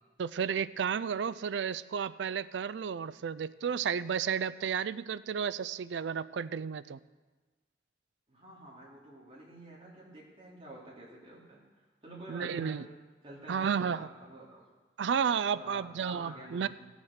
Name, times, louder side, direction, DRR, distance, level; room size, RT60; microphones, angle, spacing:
voice 1, 0.2-7.0 12.3-12.8 13.5-14.1 15.0-16.7, right 7 dB, 85° right, 16 dB, 0.4 m, -32 dB
voice 2, 8.3-11.6 12.0-12.9 13.2-14.7 15.5-16.7, right 1 dB, 30° right, -5 dB, 3.1 m, -48 dB
15.0 x 7.1 x 6.6 m, 1.3 s
head